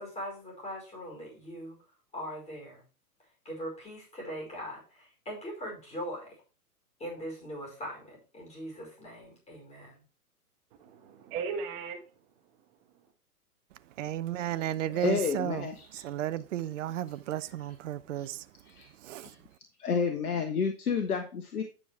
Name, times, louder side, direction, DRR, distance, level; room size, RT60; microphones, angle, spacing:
voice 1, 0.0-1.8 2.1-2.8 3.5-6.4 7.0-10.0, equal, 15° left, 5.2 m, -41 dB
voice 2, 10.8-13.1, right 5 dB, 35° right, 1.5 m, -39 dB
voice 3, 14.0-19.5, right 12 dB, 55° right, 0.6 m, -34 dB
voice 4, 14.9-16.0 18.7-18.9 19.2-19.4 19.8-21.6, left 6 dB, 70° left, 1.3 m, -30 dB
9.7 x 6.4 x 3.4 m
figure-of-eight pair, 110°, 46 cm